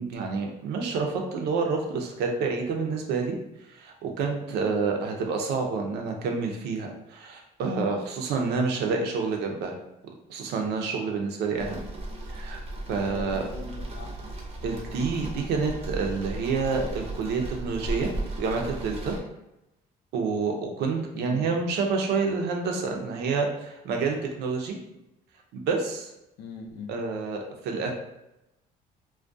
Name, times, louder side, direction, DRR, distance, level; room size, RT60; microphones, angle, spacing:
voice 1, 0.0-3.4 3.7-9.8 10.3-11.8 12.3-12.6 12.9-13.4 14.6-18.1 18.4-19.2 20.1-24.8 25.5-26.1 26.9-27.9, right 4 dB, 75° right, 2 dB, 0.5 m, -28 dB
sound 1, 11.6-19.2, right 2 dB, 35° right, 0.6 m, -36 dB
voice 2, 12.9-14.2 21.1-21.4 26.4-26.9, left 5 dB, 85° left, 3 dB, 0.5 m, -41 dB
2.3 x 2.1 x 2.5 m, 0.91 s
cardioid pair, 110°, 17 cm